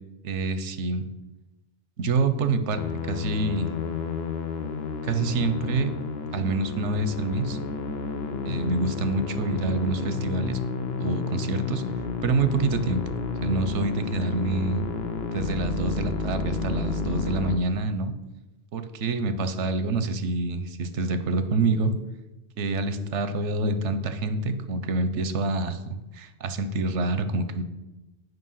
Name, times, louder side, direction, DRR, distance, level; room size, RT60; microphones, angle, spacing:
voice 1, 0.2-1.1 2.0-3.7 5.0-5.9 6.3-7.6 8.4-10.6 11.0-11.8 12.2-13.1 13.4-14.8 15.3-18.1 18.7-21.9 22.6-27.6, right 3 dB, 85° right, 9 dB, 1.1 m, -27 dB
Musical instrument, 2.8-17.6, left 5 dB, 65° left, 1.0 m, -31 dB
8.1 x 5.5 x 5.6 m, 1.0 s
omnidirectional pair, 1.2 m